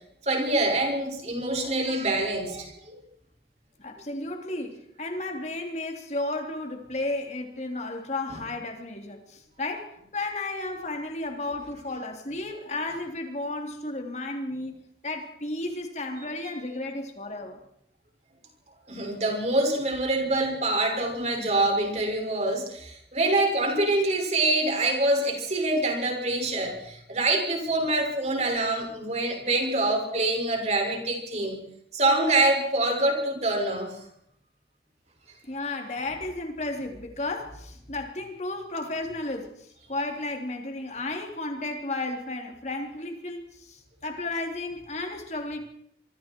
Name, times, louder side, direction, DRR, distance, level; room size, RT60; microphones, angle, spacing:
voice 1, 0.2-3.0 8.3-8.4 18.9-31.6 31.9-33.9, right 2 dB, 40° right, 6.2 m, -25 dB
voice 2, 3.8-14.8 15.0-17.6 35.5-39.5 39.9-45.6, left 2 dB, 40° left, 3.4 m, -33 dB
26.0 x 24.5 x 4.7 m
head